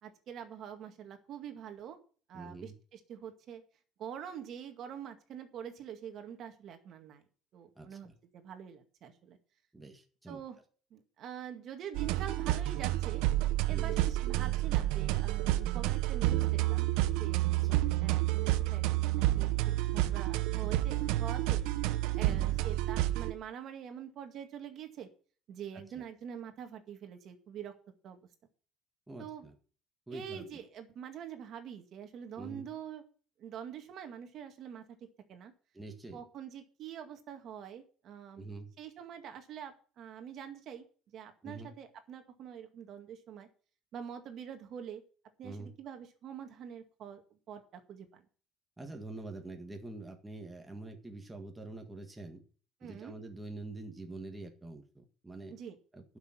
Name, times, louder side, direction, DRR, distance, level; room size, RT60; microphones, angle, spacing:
voice 1, 0.0-2.0 2.3-3.6 4.0-7.2 7.5-9.4 10.3-10.6 10.9-13.2 13.7-16.9 17.2-21.6 22.1-25.1 25.5-27.7 28.0-28.2 29.2-29.4 30.1-33.0 33.4-34.8 35.3-35.5 36.1-38.5 38.8-40.9 41.1-43.5 43.9-45.0 45.4-47.2 47.5-48.2 52.8-53.1 55.5-55.8, right 8 dB, 50° right, 6 dB, 2.0 m, -45 dB
voice 2, 2.3-2.7 7.8-8.1 9.7-10.4 13.7-14.0 17.5-17.9 22.2-22.6 29.1-29.5 30.1-30.4 32.4-32.7 35.7-36.2 38.4-38.7 41.4-41.7 45.4-45.7 48.8-52.4 52.8-55.5 55.9-56.2, right 2 dB, 10° right, 3 dB, 1.7 m, -45 dB
sound 1, 11.9-23.3, right 15 dB, 90° right, 0.8 m, -30 dB
11.5 x 6.4 x 7.5 m, 0.41 s
cardioid pair, 140°, 0 cm